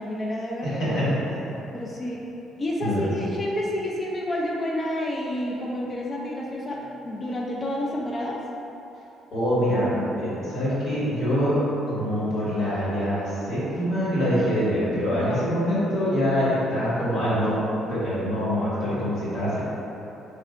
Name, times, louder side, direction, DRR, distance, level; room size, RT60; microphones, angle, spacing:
voice 1, 0.0-1.0 1.7-2.2 2.6-8.4 15.1-15.5, left 1 dB, 25° left, -3 dB, 0.4 m, -29 dB
voice 2, 0.6-1.5 2.8-3.0 9.3-11.6 11.9-17.6 17.9-19.6, equal, 65° left, -9 dB, 1.5 m, -25 dB
3.6 x 2.4 x 4.3 m, 3.0 s
cardioid pair, 120°, 0 cm